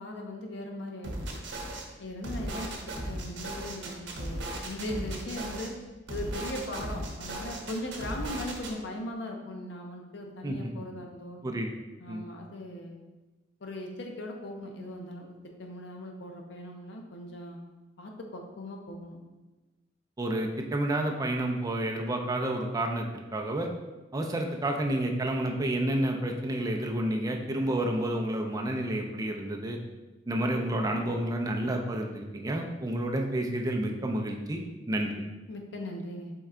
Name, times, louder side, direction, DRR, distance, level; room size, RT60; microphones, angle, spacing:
voice 1, 0.0-1.4 2.0-5.7 6.1-11.4 12.0-13.0 13.6-17.6 18.0-19.2 35.5-36.3, left 1 dB, 65° left, 2 dB, 0.6 m, -39 dB
sound 1, 1.0-1.8 2.2-5.7 6.1-8.7, right 1 dB, 70° right, 0.8 m, -37 dB
voice 2, 20.2-23.7 24.1-29.8 30.3-35.2, right 1 dB, 20° right, 2 dB, 0.4 m, -30 dB
4.5 x 3.2 x 3.6 m, 1.1 s
head